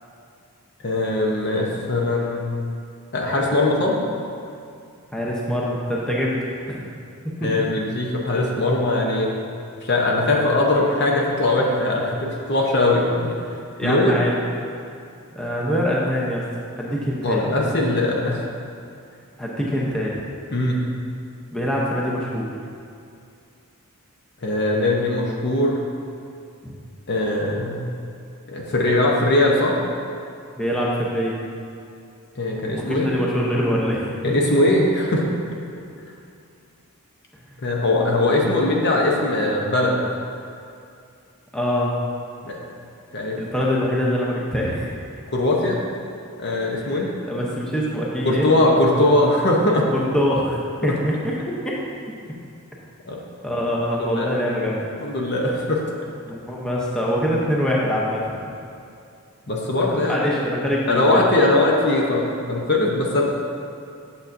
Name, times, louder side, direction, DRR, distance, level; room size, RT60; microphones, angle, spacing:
voice 1, 0.8-2.4 3.1-4.0 7.4-9.3 9.8-13.4 13.8-14.2 17.2-18.4 20.5-20.8 24.4-25.8 27.1-27.8 28.5-29.8 32.3-33.1 34.2-35.2 37.6-40.0 42.4-42.6 43.1-43.4 45.3-45.8 46.4-47.1 48.2-49.9 50.8-50.9 53.1-53.2 54.0-54.3 55.0-55.8 59.5-60.4 60.9-63.2, left 2 dB, 50° left, -1 dB, 0.8 m, -20 dB
voice 2, 5.1-6.4 6.7-6.9 7.4-7.5 13.8-14.4 15.4-16.4 16.8-17.4 19.4-20.1 21.5-22.5 26.6-26.7 30.6-31.3 32.7-34.3 41.5-41.9 43.4-44.9 46.8-47.0 47.3-48.5 49.9-50.6 50.8-51.3 51.6-51.7 53.4-55.0 56.3-58.3 59.9-61.2, equal, 5° left, -5 dB, 0.7 m, -24 dB
8.9 x 6.9 x 2.6 m, 2.5 s
head